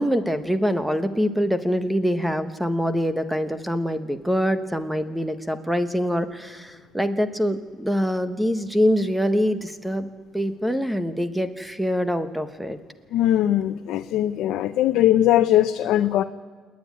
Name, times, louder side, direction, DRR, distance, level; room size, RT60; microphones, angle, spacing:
voice 1, 0.0-12.8, equal, 5° right, 10 dB, 1.1 m, -24 dB
voice 2, 13.1-16.2, left 12 dB, 80° left, 7 dB, 0.7 m, -20 dB
28.5 x 9.6 x 9.6 m, 1.5 s
cardioid pair, 145°, 0 cm